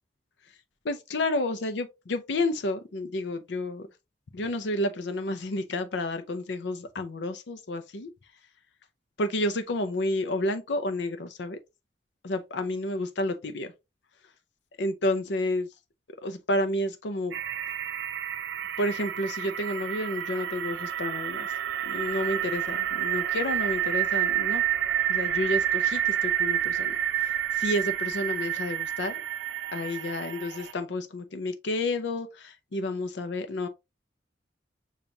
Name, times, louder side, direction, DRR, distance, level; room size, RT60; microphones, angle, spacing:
voice 1, 0.8-3.9 4.3-8.1 9.2-11.6 12.2-13.7 14.8-15.7 16.2-17.3 18.8-21.5 21.8-24.6 25.1-29.2 29.7-33.7, left 1 dB, 75° left, 0.6 m, -30 dB
sound 1, 17.3-30.7, right 11 dB, 85° right, 0.5 m, -29 dB
6.9 x 2.5 x 2.7 m
head